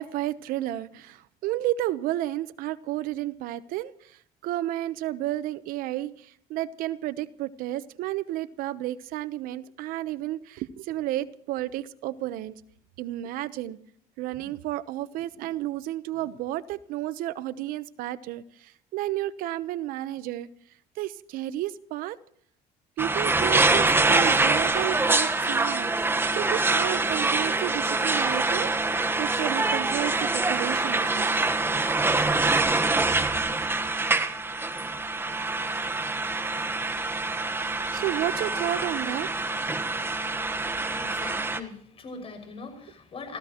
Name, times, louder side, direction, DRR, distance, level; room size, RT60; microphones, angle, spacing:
voice 1, 0.0-4.1 4.4-12.6 13.0-13.8 14.2-20.5 21.0-22.2 23.0-25.9 26.3-31.5 37.9-39.3, right 14 dB, 80° right, 15 dB, 0.9 m, -32 dB
sound 1, 23.0-41.6, right 3 dB, 15° right, 1.3 m, -25 dB
voice 2, 40.9-43.4, left 4 dB, 40° left, 5 dB, 6.1 m, -41 dB
28.5 x 15.5 x 3.0 m, 0.63 s
cardioid pair, 110°, 15 cm